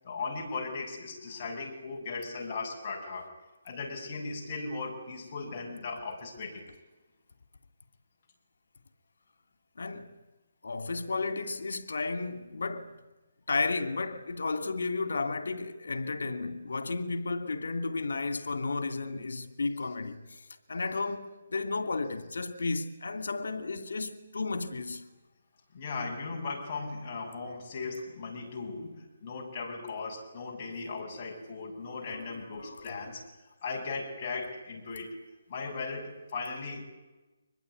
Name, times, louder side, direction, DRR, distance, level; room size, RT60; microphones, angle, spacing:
voice 1, 0.0-3.4 3.6-6.7 25.7-33.2 33.6-35.2 35.5-36.8, left 4 dB, 35° left, 6.9 m, -37 dB
voice 2, 9.8-10.1 10.6-13.0 13.5-20.4 20.7-25.0 32.1-32.9, left 3 dB, 85° left, 2.7 m, -33 dB
25.0 x 21.0 x 9.5 m
hypercardioid pair, 165°, 0 cm